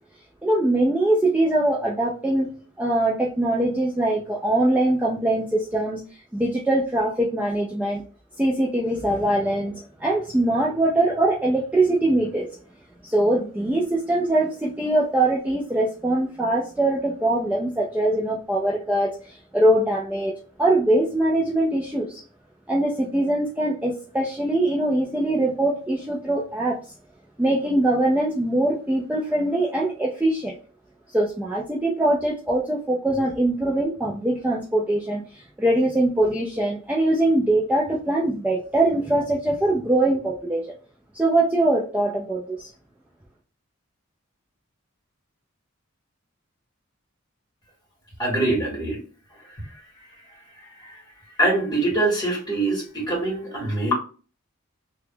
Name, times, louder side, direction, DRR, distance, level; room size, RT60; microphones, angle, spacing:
voice 1, 0.4-2.5 2.8-6.0 6.3-8.0 8.4-12.5 13.0-20.3 20.6-22.2 22.7-26.8 27.4-30.5 31.1-40.7 41.1-42.7, right 1 dB, 5° right, -3 dB, 0.4 m, -22 dB
voice 2, 48.2-49.0 50.6-51.0 51.4-53.9, right 2 dB, 20° left, -4 dB, 1.6 m, -24 dB
2.9 x 2.2 x 3.6 m, 0.38 s
head